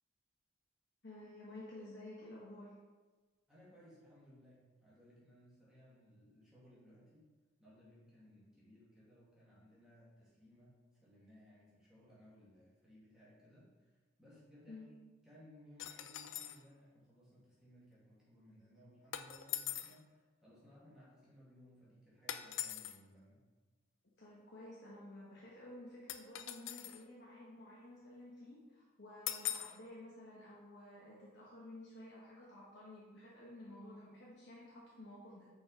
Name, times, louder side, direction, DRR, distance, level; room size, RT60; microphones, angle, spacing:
voice 1, 1.0-2.7 14.7-14.9 24.2-35.5, left 1 dB, 60° left, -6 dB, 1.3 m, -53 dB
voice 2, 3.5-7.3 7.6-10.7 11.0-14.9 15.2-23.4, equal, 5° right, -9 dB, 2.3 m, -62 dB
sound 1, 15.8-16.6 19.1-20.0 22.3-23.0 26.1-27.0 29.3-29.8, left 12 dB, 80° left, 0.4 m, -42 dB
6.1 x 4.8 x 5.0 m, 1.3 s
head